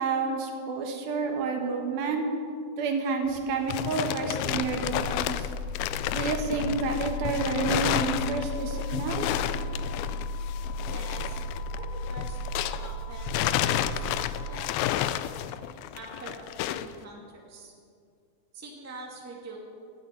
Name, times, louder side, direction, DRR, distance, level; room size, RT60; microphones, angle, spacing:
voice 1, 0.0-2.2 2.8-5.5 6.1-9.4, right 4 dB, 70° right, 3 dB, 3.2 m, -29 dB
sound 1, 3.3-12.9 13.2-16.9, left 13 dB, 80° left, 2.4 m, -31 dB
sound 2, 4.5-14.2, left 2 dB, 20° left, 2.5 m, -35 dB
sound 3, 6.9-15.0, left 16 dB, 45° right, 1.3 m, -49 dB
voice 2, 10.9-11.4 11.7-12.4 12.8-15.3 15.9-17.7 18.5-19.6, right 2 dB, 5° right, -2 dB, 1.4 m, -45 dB
12.0 x 10.5 x 9.3 m, 2.3 s
omnidirectional pair, 4.5 m